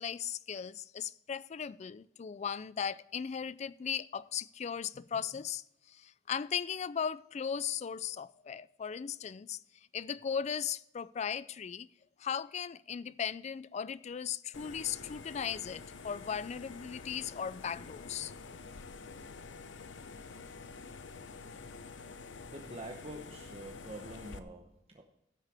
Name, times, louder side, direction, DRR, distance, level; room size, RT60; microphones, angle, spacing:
voice 1, 0.0-5.6 5.9-9.6 9.9-11.9 12.2-18.3, left 7 dB, 40° left, 0.3 m, -37 dB
sound 1, 14.5-24.4, left 4 dB, 90° left, 0.7 m, -48 dB
voice 2, 22.4-25.0, right 1 dB, 35° right, 0.9 m, -46 dB
15.5 x 6.6 x 3.4 m
head